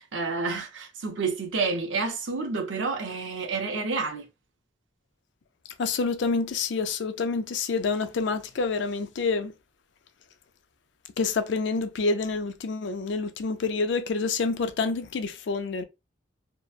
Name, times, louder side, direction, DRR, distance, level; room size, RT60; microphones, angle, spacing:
voice 1, 0.0-4.3, right 4 dB, 85° right, 0.6 m, -29 dB
voice 2, 5.8-9.5 11.2-15.8, left 4 dB, 75° left, 0.4 m, -27 dB
2.8 x 2.1 x 2.3 m
head